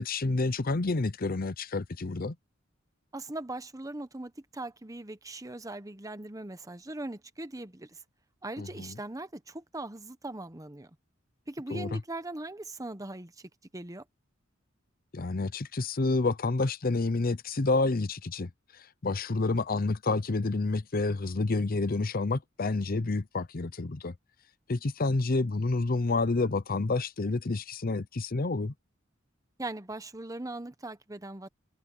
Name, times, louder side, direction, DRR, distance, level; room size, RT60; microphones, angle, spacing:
voice 1, 0.0-2.4 8.6-8.9 11.7-12.0 15.1-24.1 24.7-28.7, left 3 dB, 45° left, 0.7 m, -29 dB
voice 2, 3.1-8.0 8.4-11.0 11.5-14.0 29.6-31.5, right 2 dB, 15° right, 1.0 m, -40 dB
head